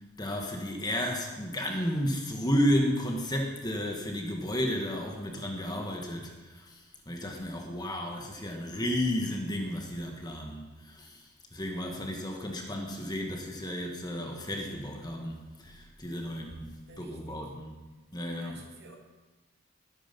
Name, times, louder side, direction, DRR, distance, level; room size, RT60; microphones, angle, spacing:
voice 1, 0.2-6.8 7.1-11.2 11.5-16.7 17.0-17.7 18.1-18.6, equal, 20° left, 2 dB, 1.8 m, -32 dB
voice 2, 16.9-17.4 18.4-19.0, right 3 dB, 55° right, 1 dB, 2.9 m, -52 dB
20.5 x 10.0 x 5.5 m, 1.2 s
head